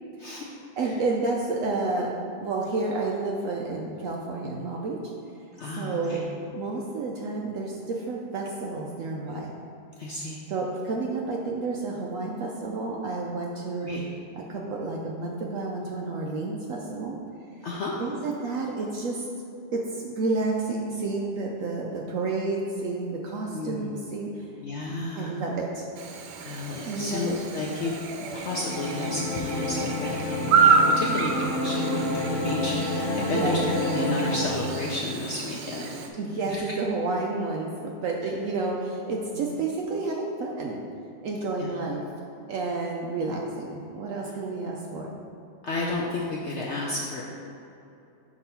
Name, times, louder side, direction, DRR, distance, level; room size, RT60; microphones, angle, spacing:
voice 1, 0.8-2.1 2.4-5.1 5.6-6.2 6.5-9.5 10.5-14.0 14.3-17.2 18.0-19.3 19.7-24.5 25.1-25.9 26.8-27.4 33.2-33.7 36.2-40.8 41.2-42.0 42.5-45.2, right 3 dB, 75° right, -1 dB, 0.7 m, -30 dB
voice 2, 5.6-6.2 10.0-10.4 13.8-14.1 17.6-18.0 23.5-23.9 24.6-25.3 26.4-33.6 33.9-36.0 36.5-36.7 39.3-39.6 41.6-41.7 45.6-47.3, left 2 dB, 85° left, -3 dB, 0.6 m, -32 dB
Chirp tweet / Buzz, 26.0-36.1, right 5 dB, 90° right, 1.2 m, -28 dB
sound 1, 28.2-34.6, left 1 dB, 55° left, 1.1 m, -29 dB
6.0 x 2.9 x 5.6 m, 2.8 s
omnidirectional pair, 1.8 m